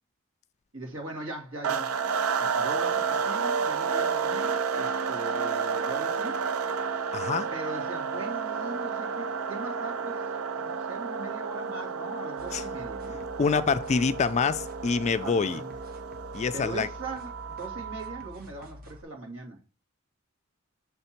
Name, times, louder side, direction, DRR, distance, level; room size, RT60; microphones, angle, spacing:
voice 1, 0.7-2.0 2.3-6.4 7.5-13.3 15.2-15.7 16.5-19.6, right 2 dB, 65° right, 2.3 m, -40 dB
sound 1, 1.6-18.3, right 5 dB, 85° right, 0.5 m, -31 dB
voice 2, 7.1-7.5 12.5-12.6 13.4-15.6 16.3-16.9, left 5 dB, 35° left, 0.3 m, -26 dB
sound 2, 12.4-19.0, left 2 dB, 45° right, 1.0 m, -47 dB
6.9 x 3.5 x 4.3 m
head